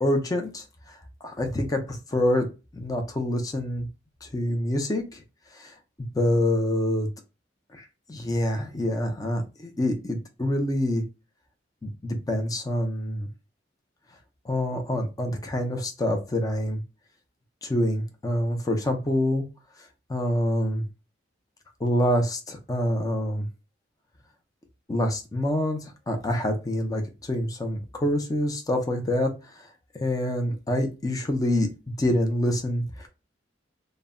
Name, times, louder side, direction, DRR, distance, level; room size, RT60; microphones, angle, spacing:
voice 1, 0.0-2.5 2.7-3.9 4.2-5.2 5.5-5.7 6.1-7.1 7.7-11.0 11.8-13.3 14.4-16.8 17.6-19.4 20.1-20.8 21.8-23.5 24.9-29.7 30.0-31.7 32.0-33.1, left 1 dB, 20° left, 5 dB, 0.4 m, -26 dB
2.1 x 2.0 x 3.6 m, 0.29 s
head